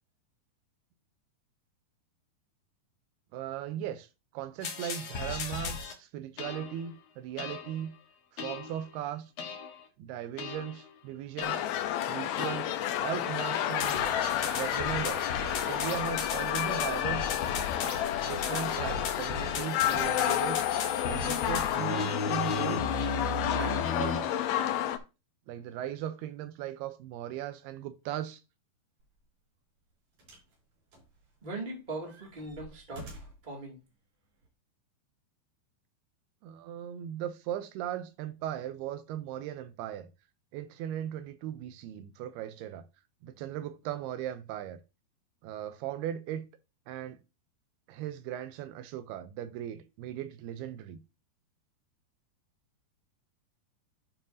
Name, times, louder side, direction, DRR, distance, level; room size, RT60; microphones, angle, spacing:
voice 1, 3.3-7.9 8.3-9.3 10.0-11.6 12.1-12.7 13.0-14.2 14.5-15.3 15.7-17.4 18.2-20.7 21.1-22.9 23.6-24.3 25.5-28.4 36.4-40.1 40.5-42.9 43.2-44.8 45.4-46.5 46.9-47.2 47.9-51.0, right 11 dB, 85° right, 2.6 m, -38 dB
sound 1, 4.6-5.9 6.4-6.9 7.4-7.8 8.4-8.8 9.4-9.8 10.4-10.9 11.4-11.8 12.4-12.8 13.4-24.2, left 4 dB, 55° left, 2.0 m, -36 dB
sound 2, 11.4-25.0, left 11 dB, 75° left, 2.6 m, -30 dB
sound 3, 29.0-29.2 30.2-30.6 30.9-31.6 32.0-33.5 34.4-34.5, right 1 dB, 45° right, 4.8 m, -49 dB
voice 2, 31.4-33.1 33.4-33.8, right 2 dB, 15° right, 1.6 m, -39 dB
11.5 x 5.5 x 2.7 m
omnidirectional pair, 4.6 m